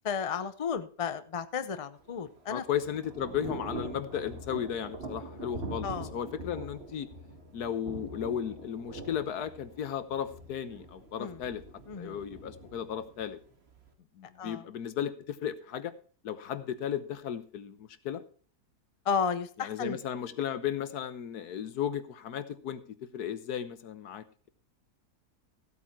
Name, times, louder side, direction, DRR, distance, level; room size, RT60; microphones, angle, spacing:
voice 1, 0.0-2.6 5.8-6.1 11.2-11.4 11.9-12.2 14.4-14.6 19.1-20.0, left 6 dB, 35° left, 12 dB, 0.5 m, -33 dB
Thunder / Rain, 2.0-13.9, right 2 dB, 40° right, 1.8 m, -43 dB
voice 2, 2.5-7.1 7.5-11.6 12.0-13.4 14.2-15.9 16.2-18.2 19.6-24.5, left 9 dB, 80° left, 12 dB, 1.5 m, -35 dB
15.0 x 8.4 x 4.4 m, 0.42 s
omnidirectional pair, 1.7 m